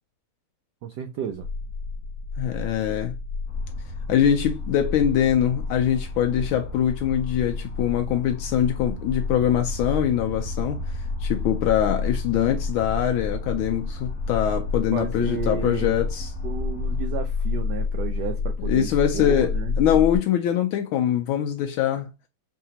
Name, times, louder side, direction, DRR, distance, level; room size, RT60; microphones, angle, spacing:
voice 1, 0.8-1.5 14.9-15.9 16.4-19.7, right 7 dB, 75° right, 0.9 m, -32 dB
sound 1, 1.3-20.2, left 4 dB, 25° left, 1.2 m, -30 dB
voice 2, 2.4-3.1 4.1-16.3 18.7-22.1, left 10 dB, 80° left, 1.3 m, -23 dB
sound 2, 3.4-17.0, equal, 5° left, 0.8 m, -37 dB
4.7 x 3.5 x 2.8 m
omnidirectional pair, 2.3 m